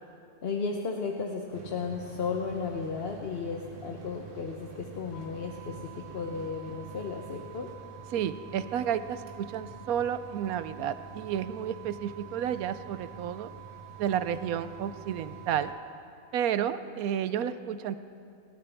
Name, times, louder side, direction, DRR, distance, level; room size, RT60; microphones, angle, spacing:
voice 1, 0.4-7.7, left 5 dB, 50° left, 1 dB, 1.0 m, -34 dB
sound 1, 1.5-15.7, right 3 dB, 60° right, 1.4 m, -48 dB
sound 2, 5.1-15.7, right 16 dB, 30° left, 2.8 m, -50 dB
voice 2, 8.1-13.5 14.0-15.7 16.3-18.0, right 9 dB, 80° right, 12 dB, 1.0 m, -31 dB
27.5 x 12.5 x 3.4 m, 2.5 s
omnidirectional pair, 1.5 m